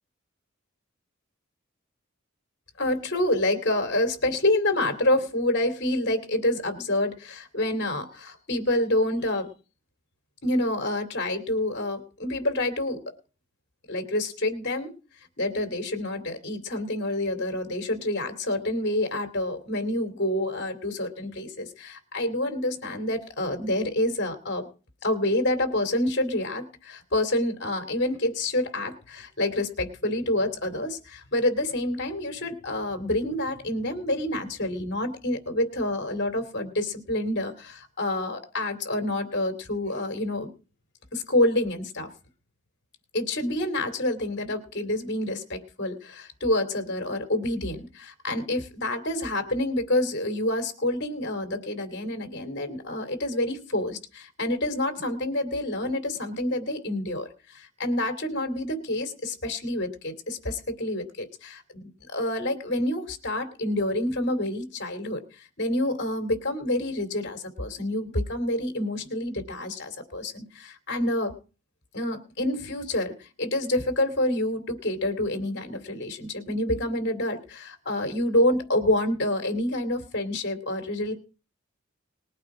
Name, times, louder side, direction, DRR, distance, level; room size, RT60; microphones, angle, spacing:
voice 1, 2.8-9.5 10.4-13.0 13.9-14.9 15.4-24.7 25.0-40.5 41.1-42.1 43.1-71.3 71.9-81.1, left 1 dB, 55° left, 7 dB, 2.8 m, -28 dB
20.5 x 8.8 x 4.9 m, 0.35 s
head